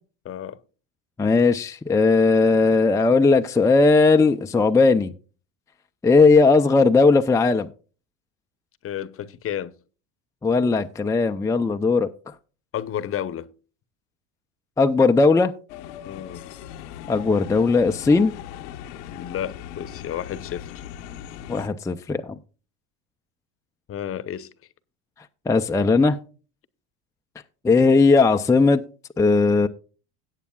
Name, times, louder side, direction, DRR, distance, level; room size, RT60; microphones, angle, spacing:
voice 1, 0.2-0.6 8.8-9.7 12.7-13.5 16.1-16.4 19.1-20.8 23.9-24.5, left 10 dB, 40° left, 0.9 m, -31 dB
voice 2, 1.2-5.1 6.0-7.7 10.4-12.1 14.8-15.5 17.1-18.3 21.5-22.4 25.5-26.2 27.6-28.8 29.2-29.7, left 3 dB, 10° left, 0.5 m, -18 dB
sound 1, 15.7-21.7, left 10 dB, 80° left, 0.9 m, -39 dB
17.5 x 8.2 x 2.3 m
supercardioid pair, 90°, 35 cm